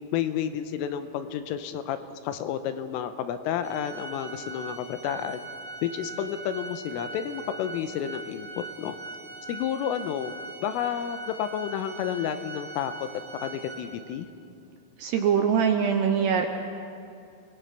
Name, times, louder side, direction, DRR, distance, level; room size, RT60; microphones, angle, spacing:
voice 1, 0.1-2.0 2.2-5.4 5.8-8.9 9.5-10.3 10.6-13.1 13.4-14.3, left 9 dB, 85° left, 10 dB, 3.4 m, -31 dB
Organ, 3.6-14.3, right 3 dB, 20° right, 1.5 m, -41 dB
voice 2, 15.0-16.5, right 7 dB, 75° right, 5 dB, 2.5 m, -23 dB
29.5 x 20.5 x 5.7 m, 2.6 s
omnidirectional pair, 5.8 m